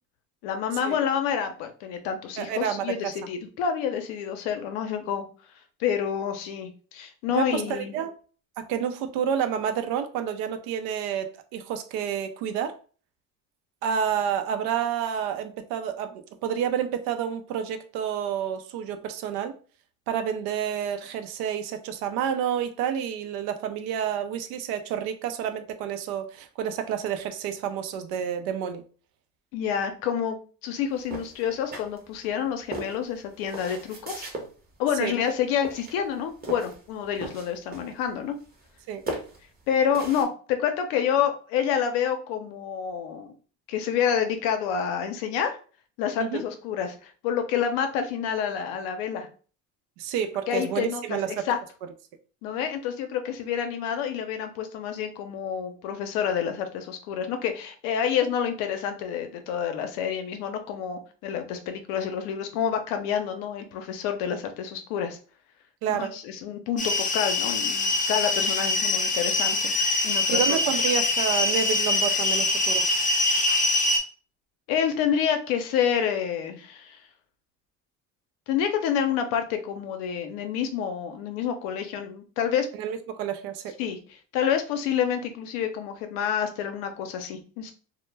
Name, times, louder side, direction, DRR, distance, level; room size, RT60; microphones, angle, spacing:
voice 1, 0.4-5.3 5.8-7.9 29.5-30.4 30.6-34.3 34.8-38.4 39.7-43.3 43.7-45.6 46.0-49.3 50.5-51.6 52.4-65.2 65.9-69.7 70.0-70.5 74.7-77.0 78.5-82.7 83.8-87.7, left 8 dB, 85° left, 0.6 m, -28 dB
voice 2, 2.4-3.1 7.3-8.1 8.6-12.8 13.8-19.5 20.1-28.8 35.0-35.1 38.9-39.0 46.2-46.4 50.0-51.3 65.8-66.1 70.3-72.9 82.7-83.7, right 8 dB, 80° right, 0.5 m, -29 dB
sound 1, 31.1-32.3 32.7-34.5 35.1-35.4 35.6-36.8 37.1-38.1 38.4-38.8 39.1-40.2, right 2 dB, 25° right, 0.8 m, -37 dB
sound 2, 66.8-74.0, left 2 dB, 25° left, 0.5 m, -24 dB
2.1 x 2.1 x 3.2 m
supercardioid pair, 95°, 36 cm